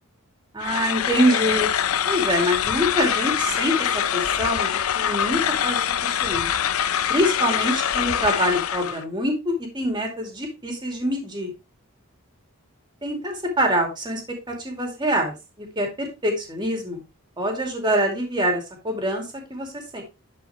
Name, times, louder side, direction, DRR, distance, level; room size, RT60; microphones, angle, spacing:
voice 1, 0.5-1.7 2.0-6.5 7.1-11.5 13.0-17.0 17.4-20.0, equal, 20° right, 2 dB, 2.5 m, -25 dB
sound 1, 0.6-9.0, left 9 dB, 75° left, 0.5 m, -24 dB
11.0 x 4.8 x 3.1 m, 0.26 s
head